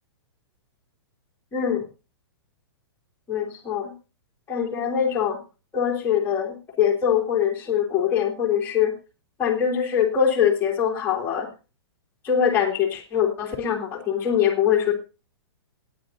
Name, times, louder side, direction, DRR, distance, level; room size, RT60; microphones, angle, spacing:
voice 1, 1.5-1.8 3.3-3.9 4.5-5.4 5.7-8.9 9.4-11.5 12.2-14.9, left 8 dB, 15° left, -2 dB, 2.7 m, -23 dB
27.5 x 9.2 x 2.7 m, 0.31 s
hypercardioid pair, 135°, 14 cm